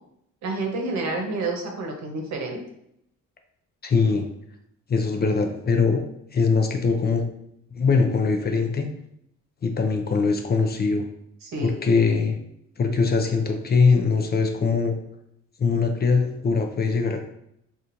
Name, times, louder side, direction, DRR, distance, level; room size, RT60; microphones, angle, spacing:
voice 1, 0.4-2.6 11.4-11.7, right 3 dB, 65° right, 2 dB, 0.9 m, -29 dB
voice 2, 3.8-4.3 4.9-6.0 6.3-7.2 7.7-8.9 9.6-11.1 11.6-12.4 12.8-14.9 15.6-17.3, left 4 dB, 35° left, 4 dB, 0.5 m, -22 dB
4.2 x 2.5 x 2.6 m, 0.74 s
cardioid pair, 90°, 30 cm